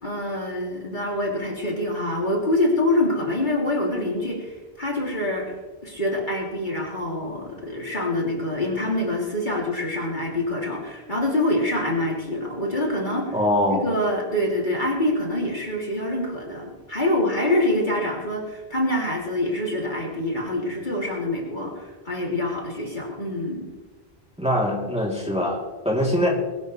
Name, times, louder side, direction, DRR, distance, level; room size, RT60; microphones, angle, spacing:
voice 1, 0.0-13.3 13.7-23.7, left 1 dB, 50° left, -2 dB, 3.2 m, -25 dB
voice 2, 13.3-13.8 24.4-26.3, left 1 dB, 5° right, -4 dB, 3.1 m, -23 dB
21.5 x 13.0 x 3.3 m, 1.2 s
omnidirectional pair, 1.1 m